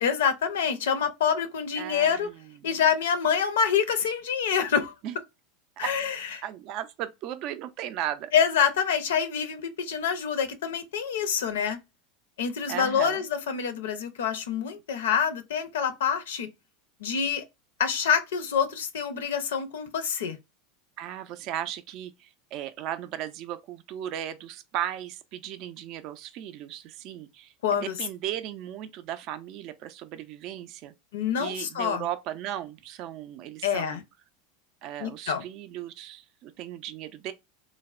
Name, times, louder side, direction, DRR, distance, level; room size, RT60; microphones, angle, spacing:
voice 1, 0.0-2.3 2.6-4.9 5.8-6.4 8.3-11.8 12.4-16.5 17.0-17.4 17.8-20.4 27.6-28.0 31.1-32.0 33.6-34.0 35.0-35.4, left 7 dB, 75° left, 0.5 m, -26 dB
voice 2, 1.8-2.5 5.0-5.2 5.8-5.9 6.4-8.3 12.7-13.2 21.0-27.5 27.8-30.9 31.4-34.0 34.8-37.3, right 11 dB, 50° right, 0.3 m, -36 dB
3.2 x 2.0 x 2.3 m
hypercardioid pair, 85°, 0 cm